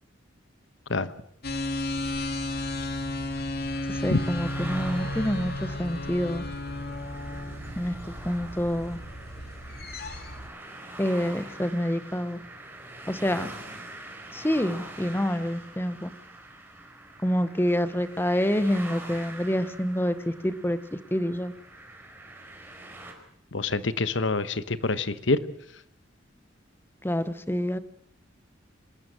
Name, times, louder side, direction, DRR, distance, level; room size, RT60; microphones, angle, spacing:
sound 1, 1.4-10.5, left 1 dB, 55° left, 2.3 m, -33 dB
sound 2, 3.7-23.1, right 1 dB, 10° right, 4.2 m, -44 dB
voice 1, 3.9-6.4 7.8-7.9 8.2-9.0 11.0-12.4 13.1-13.5 14.3-16.1 17.2-21.5 27.0-27.8, equal, 10° left, 13 dB, 1.0 m, -27 dB
voice 2, 23.5-25.4, left 3 dB, 70° left, 13 dB, 1.1 m, -26 dB
26.0 x 13.0 x 8.8 m, 0.71 s
head